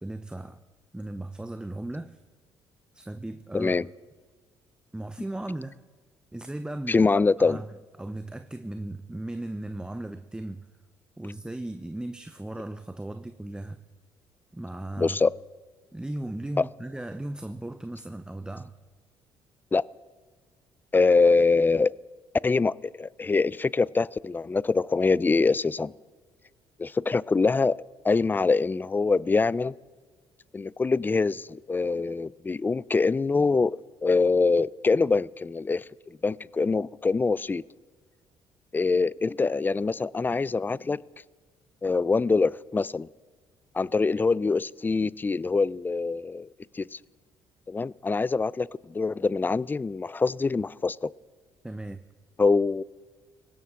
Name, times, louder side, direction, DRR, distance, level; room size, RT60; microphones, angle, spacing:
voice 1, 0.0-0.6 0.9-2.2 2.9-3.8 4.9-5.8 6.3-7.1 7.4-7.7 8.0-10.7 11.2-13.8 14.5-15.2 15.9-18.7 51.6-52.0, right 1 dB, 10° right, 10 dB, 0.7 m, -36 dB
voice 2, 3.5-3.9 6.9-7.6 15.0-15.3 16.6-16.7 19.7-19.8 20.9-21.9 22.4-25.9 26.8-29.7 30.5-35.8 36.2-37.6 38.7-41.0 41.8-43.1 43.7-46.5 46.7-47.0 47.7-51.1 52.4-52.8, left 4 dB, 20° left, 23 dB, 0.4 m, -24 dB
19.0 x 16.5 x 3.7 m, 1.4 s
supercardioid pair, 65°, 10 cm